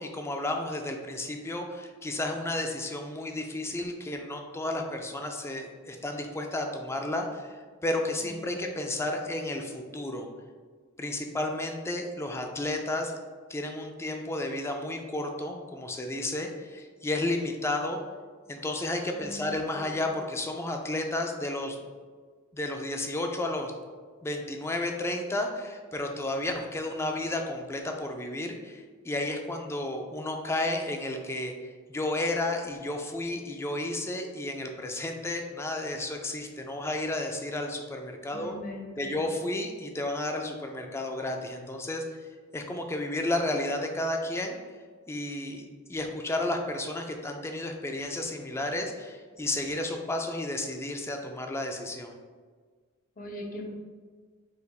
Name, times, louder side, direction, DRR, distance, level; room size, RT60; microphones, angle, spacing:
voice 1, 0.0-10.3 11.0-13.1 13.5-18.0 18.5-21.8 22.5-23.7 24.2-31.5 31.9-38.5 39.0-42.0 42.5-44.6 45.1-52.2, left 1 dB, 10° left, 3 dB, 0.3 m, -32 dB
voice 2, 8.2-8.7 19.1-20.1 38.3-39.3 53.2-53.7, left 1 dB, 40° left, 0 dB, 0.7 m, -41 dB
4.6 x 3.3 x 2.3 m, 1.5 s
head